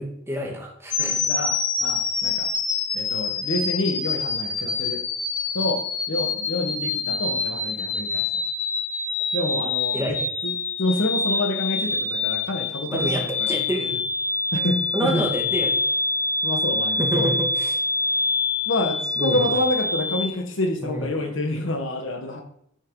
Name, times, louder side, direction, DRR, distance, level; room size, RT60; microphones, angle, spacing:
voice 1, 0.0-1.2 9.9-10.3 12.9-14.0 14.9-15.7 17.0-17.8 19.2-19.5 20.8-21.2, equal, 15° right, 0 dB, 1.7 m, -28 dB
sound 1, 0.9-20.3, left 3 dB, 40° left, 1.4 m, -26 dB
voice 2, 1.0-2.5 2.9-5.0 5.5-5.8 6.1-8.4 9.3-13.5 14.5-15.3 16.4-17.4 18.7-22.4, left 1 dB, 75° left, 4 dB, 1.5 m, -28 dB
9.3 x 5.8 x 4.8 m, 0.69 s
head